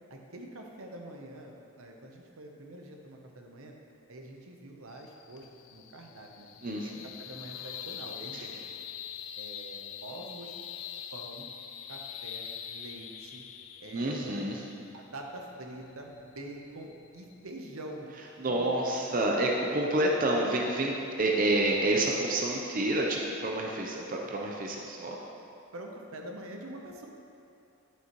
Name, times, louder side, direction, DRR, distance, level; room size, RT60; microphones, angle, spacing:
voice 1, 0.1-3.7 4.1-5.5 5.7-6.5 6.8-8.6 9.3-10.6 11.1-11.5 11.9-13.4 13.8-14.4 14.9-18.1 18.4-19.7 25.7-27.1, right 1 dB, 80° right, 2 dB, 0.8 m, -45 dB
sound 1, 4.9-17.5, left 9 dB, 65° left, 0.4 m, -44 dB
voice 2, 6.6-7.1 8.3-8.4 13.9-14.6 18.4-25.2, right 1 dB, 40° right, -1 dB, 0.6 m, -28 dB
9.4 x 6.5 x 3.0 m, 2.7 s
head